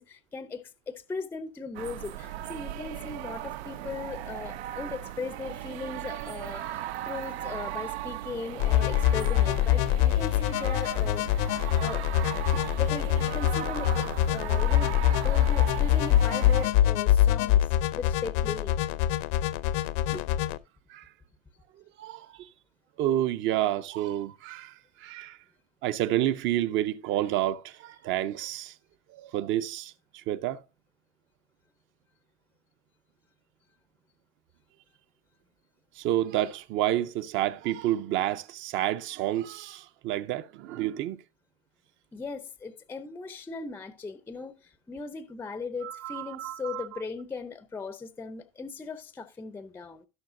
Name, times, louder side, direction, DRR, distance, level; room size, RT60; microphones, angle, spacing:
voice 1, 0.0-11.2 11.8-12.0 12.5-18.8 20.1-20.3 42.1-50.1, left 4 dB, 5° left, 0.5 m, -38 dB
sound 1, 1.7-16.7, right 13 dB, 90° right, 0.6 m, -37 dB
sound 2, 8.6-20.6, left 12 dB, 55° left, 0.6 m, -24 dB
voice 2, 22.0-22.5 23.0-25.4 25.8-28.7 29.1-30.6 36.0-41.2 45.8-47.0, right 13 dB, 40° right, 0.6 m, -29 dB
17.0 x 5.7 x 2.5 m
supercardioid pair, 135°, 32 cm